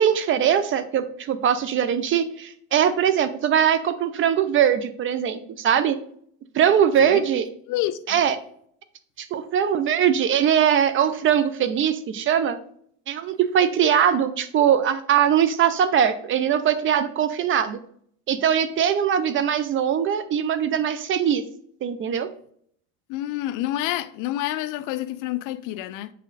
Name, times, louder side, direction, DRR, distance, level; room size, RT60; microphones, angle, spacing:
voice 1, 0.0-6.0 6.5-7.5 8.1-8.4 9.2-12.6 13.1-17.8 18.3-21.4 21.8-22.3, right 9 dB, 35° right, 0.5 m, -21 dB
voice 2, 7.7-8.2 23.1-26.1, left 14 dB, 55° left, 0.5 m, -28 dB
7.2 x 4.1 x 4.0 m
cardioid pair, 130°, 38 cm